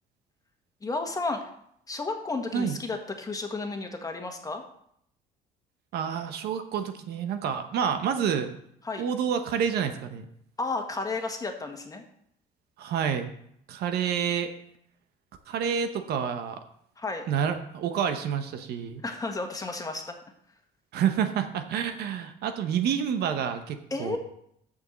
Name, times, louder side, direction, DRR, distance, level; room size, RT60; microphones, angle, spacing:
voice 1, 0.8-1.5 1.9-4.6 8.8-9.0 10.6-12.0 17.0-17.2 19.0-20.2 23.9-24.2, left 3 dB, 20° left, 4 dB, 1.5 m, -32 dB
voice 2, 5.9-8.5 9.0-10.2 12.8-13.3 13.7-14.5 15.5-16.6 17.3-19.0 20.9-24.2, right 8 dB, 70° right, 8 dB, 1.0 m, -28 dB
7.0 x 6.5 x 7.3 m, 0.70 s
cardioid pair, 110°, 17 cm